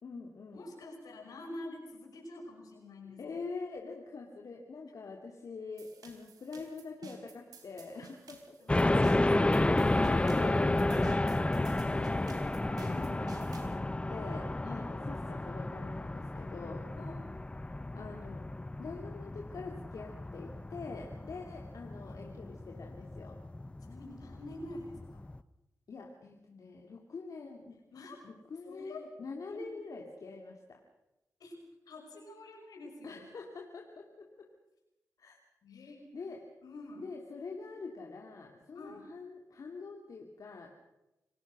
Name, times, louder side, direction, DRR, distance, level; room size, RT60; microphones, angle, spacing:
voice 1, 0.0-0.7 3.2-8.6 10.0-16.9 17.7-18.5 18.8-23.4 25.9-27.8 28.2-30.8 33.0-34.5 35.2-35.4 36.1-36.4 37.0-40.7, left 4 dB, 65° left, 1 dB, 3.0 m, -45 dB
voice 2, 0.5-3.2 8.0-8.1 8.6-9.9 14.1-14.4 14.6-14.9 16.9-17.3 22.1-22.4 23.8-25.2 27.9-28.3 28.7-29.0 29.5-29.6 31.4-31.6 31.9-33.2 35.6-36.1 36.6-37.1 37.7-37.8 38.7-39.1, left 1 dB, 85° left, 2 dB, 6.3 m, -47 dB
sound 1, 5.8-13.8, right 4 dB, 85° right, 3.6 m, -54 dB
sound 2, 8.7-25.4, left 2 dB, 20° left, 0.9 m, -32 dB
28.0 x 19.5 x 6.3 m, 0.96 s
cardioid pair, 60°, 6 cm